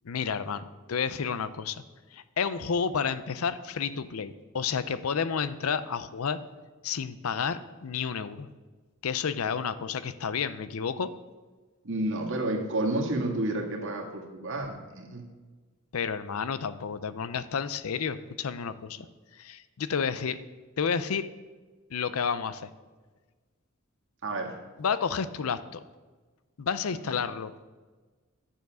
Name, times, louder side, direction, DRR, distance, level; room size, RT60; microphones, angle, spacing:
voice 1, 0.0-1.8 2.1-6.4 6.8-8.5 9.0-11.1 15.9-19.1 19.4-20.4 20.8-21.2 21.9-22.7 24.8-25.8 26.6-27.5, left 6 dB, 75° left, 14 dB, 0.5 m, -30 dB
voice 2, 11.8-15.2 24.2-24.5 27.0-27.1, right 1 dB, 60° right, 1 dB, 1.8 m, -30 dB
10.5 x 7.0 x 6.2 m, 1.3 s
head